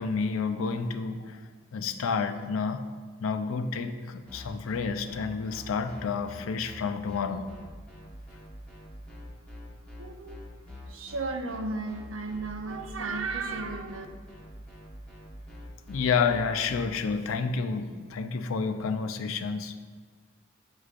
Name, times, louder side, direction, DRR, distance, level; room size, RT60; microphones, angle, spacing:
voice 1, 0.0-1.4 1.7-7.5 15.9-19.8, left 5 dB, 90° left, 9 dB, 0.4 m, -30 dB
sound 1, 4.3-16.9, left 1 dB, 5° left, 1.2 m, -46 dB
voice 2, 10.0-10.4 10.9-14.1, right 3 dB, 85° right, 5 dB, 0.6 m, -34 dB
8.9 x 4.9 x 2.5 m, 1.5 s
head